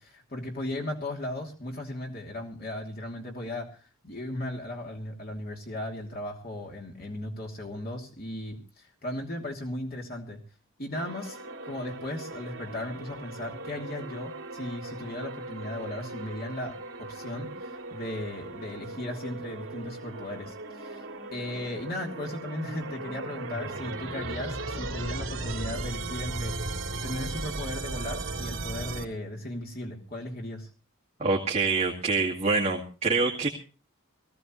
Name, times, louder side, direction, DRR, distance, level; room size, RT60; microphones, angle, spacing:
voice 1, 0.0-10.4 10.8-11.4 11.6-21.0 21.3-30.7, left 1 dB, 45° left, 0 dB, 2.9 m, -37 dB
sound 1, 10.9-29.0, right 2 dB, 60° right, 3.3 m, -37 dB
voice 2, 31.2-33.5, right 3 dB, 30° right, -1 dB, 2.2 m, -25 dB
20.0 x 16.5 x 3.1 m, 0.36 s
head